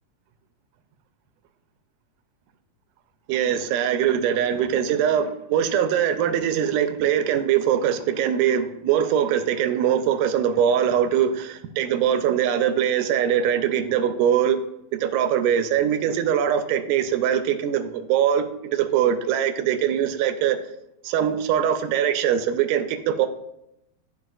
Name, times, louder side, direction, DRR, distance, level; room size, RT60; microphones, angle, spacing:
voice 1, 3.3-14.6 15.0-20.6 21.0-23.3, right 9 dB, 80° right, 8 dB, 2.0 m, -22 dB
12.0 x 4.6 x 2.4 m, 0.82 s
omnidirectional pair, 3.9 m